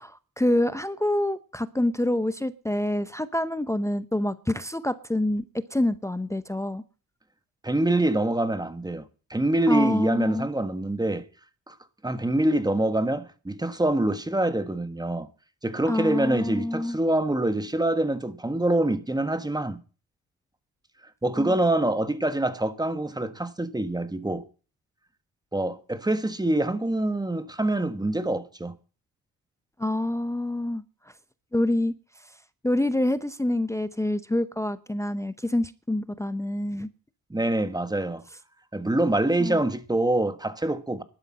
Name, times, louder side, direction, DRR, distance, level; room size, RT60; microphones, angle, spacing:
voice 1, 0.0-6.8 9.7-10.5 15.9-17.0 21.4-21.6 29.8-30.8 31.5-31.9 32.6-36.9 39.4-39.6, left 1 dB, 10° left, 0.7 m, -27 dB
voice 2, 7.6-9.0 9.3-11.3 11.7-11.8 12.0-15.3 15.6-19.8 21.2-24.5 25.5-28.7 37.3-38.2 38.7-41.0, right 1 dB, 10° right, 1.4 m, -25 dB
12.0 x 9.6 x 7.5 m
cardioid pair, 95°, 37 cm